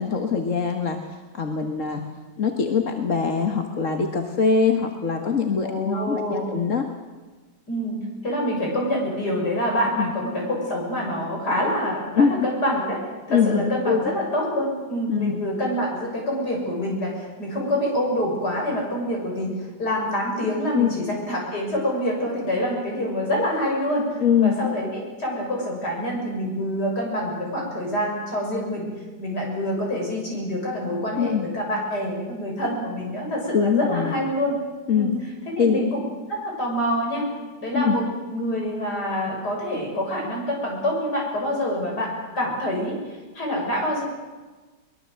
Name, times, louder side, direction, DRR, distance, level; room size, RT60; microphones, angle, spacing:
voice 1, 0.0-2.0 2.4-6.9 10.0-10.1 12.2-12.5 13.3-14.1 15.1-15.4 20.7-20.9 24.2-24.6 31.2-31.5 33.5-34.1 34.9-35.1 35.6-35.8 37.7-38.0, left 6 dB, 45° left, 5 dB, 1.8 m, -23 dB
voice 2, 5.6-6.5 7.7-13.0 13.3-28.9 29.2-34.6 34.9-35.1 35.6-36.0 36.3-37.3 37.6-44.0, equal, 65° left, -1 dB, 7.2 m, -26 dB
23.0 x 21.0 x 7.8 m, 1.3 s
omnidirectional pair, 1.9 m